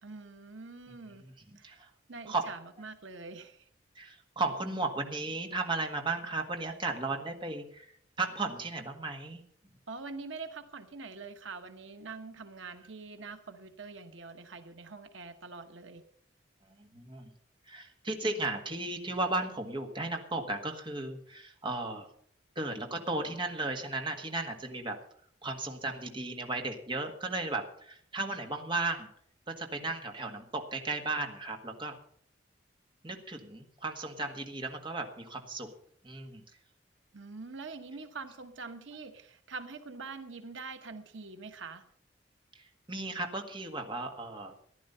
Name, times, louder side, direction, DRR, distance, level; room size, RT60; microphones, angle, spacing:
voice 1, 0.0-1.3 1.5-1.8 2.1-3.7 9.9-16.0 37.1-41.8, right 4 dB, 85° right, 7 dB, 1.2 m, -44 dB
voice 2, 0.9-1.9 2.2-2.5 3.9-7.9 8.2-9.4 16.8-17.3 17.7-22.1 22.5-25.0 25.4-29.1 29.5-32.0 33.0-35.7 36.0-36.4 42.5-44.5, right 2 dB, 25° right, 4 dB, 1.7 m, -35 dB
15.0 x 11.0 x 5.6 m, 0.64 s
head